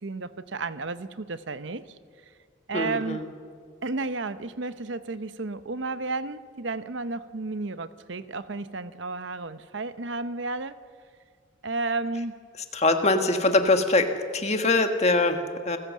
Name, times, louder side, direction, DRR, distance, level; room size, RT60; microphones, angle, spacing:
voice 1, 0.0-2.0 2.7-3.2 3.8-10.8 11.6-12.4, right 3 dB, 75° right, 13 dB, 0.8 m, -32 dB
voice 2, 2.7-3.3 12.7-14.1 14.3-15.8, left 2 dB, 35° left, 6 dB, 1.5 m, -23 dB
29.0 x 15.0 x 7.5 m, 2.1 s
head